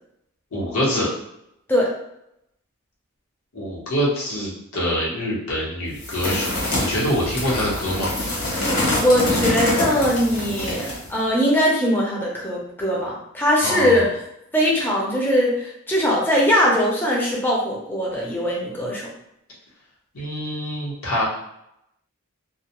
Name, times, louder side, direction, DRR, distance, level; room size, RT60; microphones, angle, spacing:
voice 1, 0.5-1.1 3.5-8.1 13.6-14.0 20.1-21.2, equal, 90° left, -6 dB, 1.0 m, -25 dB
sound 1, 6.0-11.1, left 1 dB, 70° left, 1.1 m, -25 dB
voice 2, 9.0-14.0 14.5-19.1, equal, 10° left, -4 dB, 0.4 m, -21 dB
2.2 x 2.1 x 2.9 m, 0.79 s
head